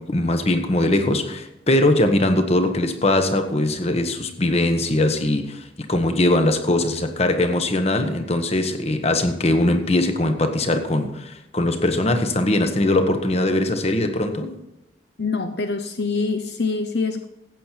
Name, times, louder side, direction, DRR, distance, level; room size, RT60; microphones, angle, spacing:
voice 1, 0.0-14.5, left 1 dB, 35° left, 7 dB, 1.2 m, -21 dB
voice 2, 15.2-17.2, left 4 dB, 65° left, 7 dB, 0.8 m, -25 dB
15.5 x 8.5 x 4.5 m, 0.94 s
head